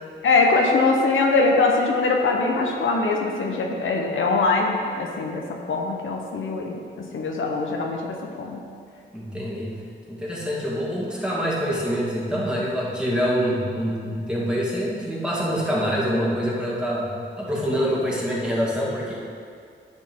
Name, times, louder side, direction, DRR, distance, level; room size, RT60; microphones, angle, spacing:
voice 1, 0.2-8.7, left 3 dB, 85° left, 0 dB, 1.1 m, -22 dB
voice 2, 9.1-9.7 10.1-17.1 17.4-19.1, equal, 5° right, -6 dB, 2.4 m, -25 dB
10.5 x 7.3 x 3.7 m, 2.2 s
cardioid pair, 95°, 20 cm